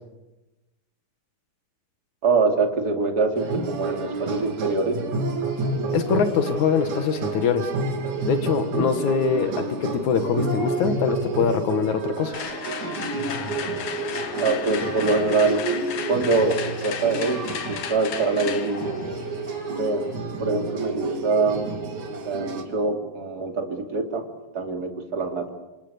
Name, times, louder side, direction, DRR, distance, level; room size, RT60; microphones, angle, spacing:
voice 1, 2.2-5.0 14.4-15.7 16.1-18.9 19.8-20.1 20.4-21.8 22.2-24.2 24.5-25.5, right 3 dB, 30° right, 3 dB, 3.0 m, -24 dB
sound 1, 3.4-22.6, right 3 dB, 60° right, 4.0 m, -30 dB
voice 2, 5.9-7.7 8.3-12.4, left 6 dB, 65° left, 9 dB, 3.0 m, -23 dB
sound 2, 12.3-20.3, left 8 dB, 80° left, 3.4 m, -35 dB
27.5 x 27.0 x 7.0 m, 1.0 s
omnidirectional pair, 3.8 m